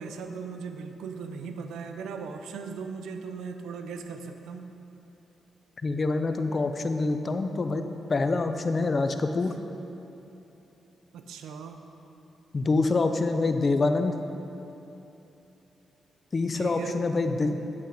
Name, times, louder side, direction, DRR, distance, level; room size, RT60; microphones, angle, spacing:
voice 1, 0.0-4.7 11.1-11.8 16.5-17.0, right 5 dB, 85° right, 6 dB, 0.6 m, -38 dB
voice 2, 5.8-7.8 8.1-9.6 12.5-14.2 16.3-17.5, left 3 dB, 40° left, 7 dB, 0.7 m, -26 dB
8.4 x 7.9 x 5.0 m, 2.9 s
supercardioid pair, 60°, 0 cm